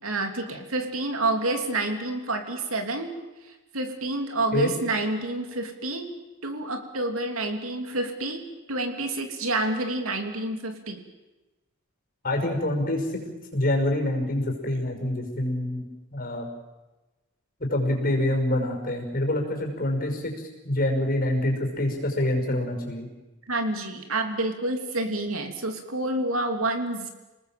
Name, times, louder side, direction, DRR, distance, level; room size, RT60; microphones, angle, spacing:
voice 1, 0.0-3.1 3.4-6.1 6.4-8.4 8.7-11.0 23.5-27.1, right 2 dB, 75° right, 5 dB, 3.0 m, -28 dB
voice 2, 12.2-13.2 13.5-15.8 16.1-16.5 17.7-20.4 20.6-23.1, left 1 dB, 45° left, 2 dB, 5.7 m, -26 dB
29.0 x 19.5 x 7.6 m, 1.1 s
head